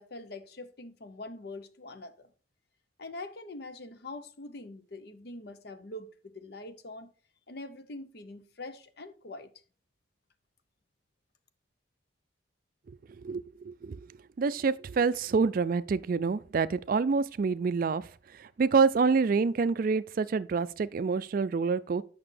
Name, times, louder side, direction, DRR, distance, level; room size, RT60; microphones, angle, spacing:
voice 1, 0.0-2.3 3.0-7.1 7.5-9.5, left 2 dB, 55° left, 0.7 m, -44 dB
voice 2, 13.2-14.0 14.4-18.0 18.6-22.0, right 5 dB, 45° right, 0.3 m, -27 dB
8.8 x 5.9 x 3.3 m
head